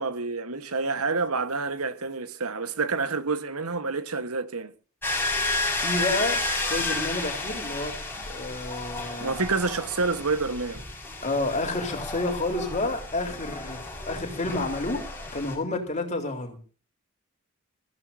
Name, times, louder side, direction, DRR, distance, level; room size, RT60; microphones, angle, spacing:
voice 1, 0.0-4.7 9.2-10.8, right 4 dB, 75° right, 1.3 m, -28 dB
sound 1, 5.0-15.5, left 2 dB, 10° left, 5.2 m, -32 dB
voice 2, 5.7-9.4 11.2-15.0 15.3-16.6, left 2 dB, 35° left, 4.0 m, -30 dB
26.0 x 16.0 x 2.7 m
head